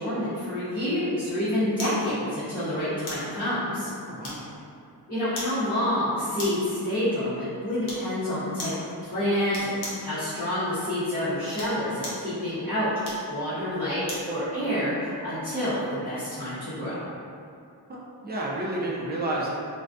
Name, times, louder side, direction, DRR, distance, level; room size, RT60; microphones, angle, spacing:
voice 1, 0.0-3.9 5.1-12.9 13.3-17.0, left 1 dB, 20° left, -16 dB, 0.8 m, -28 dB
sound 1, 1.8-2.0 3.1-3.3 4.2-4.7 5.3-5.6 6.4-6.7 7.8-8.1 8.6-8.8 9.5-10.1 11.4-12.3 13.0-14.3 14.8-14.9, left 1 dB, 65° left, 0.8 m, -37 dB
voice 2, 4.1-4.4 17.9-19.5, right 1 dB, 25° right, -4 dB, 0.4 m, -30 dB
2.3 x 2.2 x 2.5 m, 2.5 s
wide cardioid pair, 110°, 43 cm